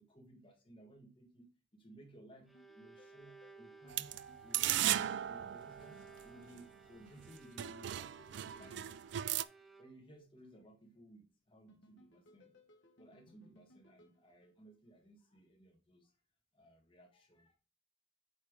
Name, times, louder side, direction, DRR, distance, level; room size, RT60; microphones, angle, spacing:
voice 1, 0.0-9.3 9.8-12.5 13.0-16.1 16.5-17.6, right 1 dB, 30° left, 1 dB, 1.6 m, -59 dB
Bowed string instrument, 2.3-10.2, right 4 dB, ahead, 0.7 m, -60 dB
sound 1, 2.4-5.5 7.0-10.2 11.7-15.0, left 2 dB, 75° left, 1.2 m, -66 dB
sound 2, 3.9-6.6 7.2-7.3 7.6-9.4, right 12 dB, 65° right, 0.3 m, -37 dB
8.6 x 3.3 x 3.6 m, 0.35 s
head